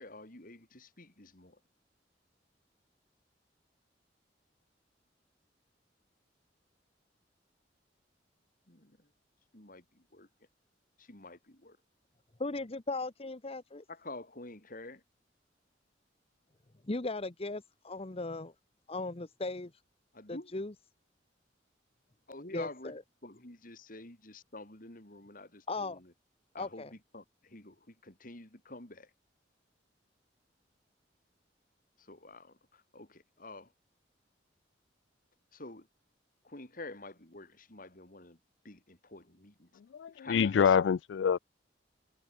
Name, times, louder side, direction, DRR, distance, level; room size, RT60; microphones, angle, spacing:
voice 1, 0.0-1.6 8.7-9.1 9.5-10.3 11.0-11.8 13.9-15.0 20.1-20.5 22.3-26.1 26.5-29.1 32.0-33.7 35.5-35.9 36.4-38.4 38.6-39.8 40.1-40.8, left 2 dB, 50° left, 4.2 m, -49 dB
voice 2, 12.4-13.8 16.9-18.5 18.9-19.7 20.3-20.7 22.5-23.0 25.7-26.0 26.6-26.9, left 2 dB, 35° left, 1.0 m, -37 dB
voice 3, 40.0-41.4, left 7 dB, 75° left, 0.4 m, -26 dB
head